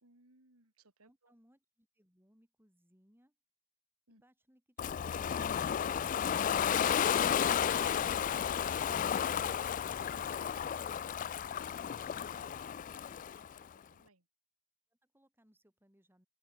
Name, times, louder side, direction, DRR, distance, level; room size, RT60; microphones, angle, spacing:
voice 1, 0.0-1.3 4.1-4.2 10.0-11.4 12.4-14.3, right 3 dB, 90° right, 3.9 m, -64 dB
voice 2, 1.0-3.4 4.1-7.0 14.9-16.3, equal, 10° right, 5.9 m, -70 dB
Ocean, 4.8-13.6, left 8 dB, 35° left, 0.3 m, -33 dB
open air
head